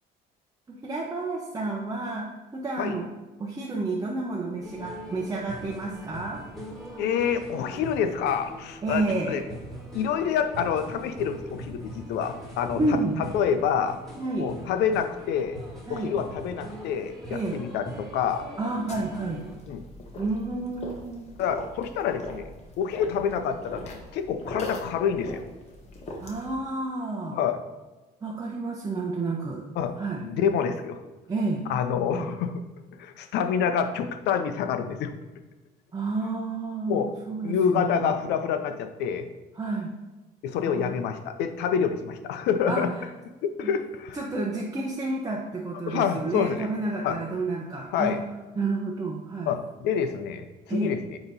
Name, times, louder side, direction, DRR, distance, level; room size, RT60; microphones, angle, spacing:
voice 1, 0.7-3.1 3.4-6.4 8.8-9.4 12.8-13.2 14.2-14.5 15.9-16.1 17.3-17.6 18.6-19.4 20.2-21.4 26.2-27.4 28.2-29.6 30.0-30.2 31.3-31.7 32.1-32.3 35.9-38.1 39.6-39.9 40.6-41.0 42.7-42.8 43.6-43.7 44.1-48.2 48.6-49.5 50.7-50.9, right 3 dB, 20° right, -2 dB, 0.8 m, -30 dB
sound 1, 4.6-19.6, right 1 dB, ahead, 1.8 m, -41 dB
voice 2, 7.0-9.4 9.9-13.0 13.3-14.0 14.4-15.6 15.9-18.5 19.7-19.8 21.4-22.5 22.8-25.4 27.3-27.6 29.8-30.0 30.2-31.0 31.7-32.5 33.0-35.1 36.9-37.1 37.4-39.3 40.4-42.9 43.4-44.2 45.9-46.7 47.0-47.2 47.9-48.2 49.5-51.2, left 7 dB, 85° left, 8 dB, 0.6 m, -27 dB
sound 2, 18.9-26.6, left 2 dB, 40° left, 1.3 m, -41 dB
8.9 x 3.0 x 4.0 m, 1.2 s
cardioid pair, 110°, 17 cm